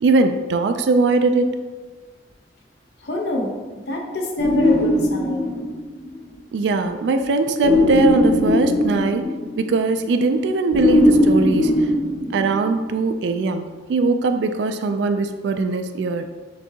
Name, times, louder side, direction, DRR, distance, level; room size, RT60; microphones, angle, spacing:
voice 1, 0.0-1.5 6.5-9.3 9.6-11.9 12.3-16.2, right 3 dB, 80° right, 8 dB, 0.3 m, -20 dB
voice 2, 3.0-3.5 3.9-5.5, left 1 dB, 75° left, 1 dB, 0.7 m, -26 dB
sound 1, 4.4-6.1 7.6-9.7 10.7-12.9, left 1 dB, 55° left, 1.3 m, -19 dB
6.6 x 2.7 x 2.7 m, 1.4 s
head